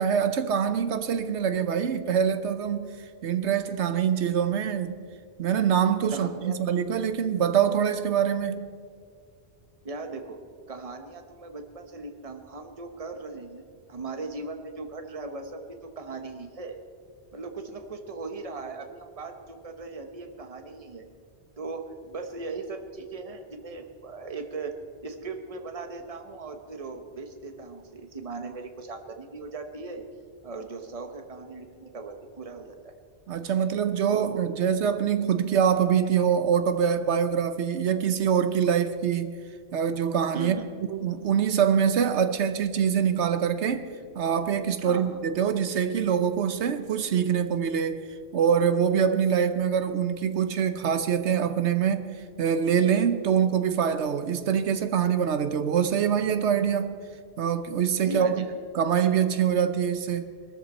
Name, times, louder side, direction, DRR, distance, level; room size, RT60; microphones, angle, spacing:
voice 1, 0.0-2.9 3.2-5.0 5.4-8.7 33.3-39.3 39.7-43.9 44.1-48.0 48.3-52.1 52.4-57.0 57.4-58.4 58.7-60.3, right 8 dB, 80° right, 1.1 m, -24 dB
voice 2, 6.1-6.5 9.8-10.4 10.7-13.6 13.9-16.8 17.3-21.1 21.6-24.7 25.0-30.0 30.4-32.9 34.1-34.4 40.3-40.7 44.8-45.2 58.0-58.5, right 3 dB, 35° right, 1.1 m, -38 dB
21.5 x 13.0 x 4.3 m
omnidirectional pair, 1.2 m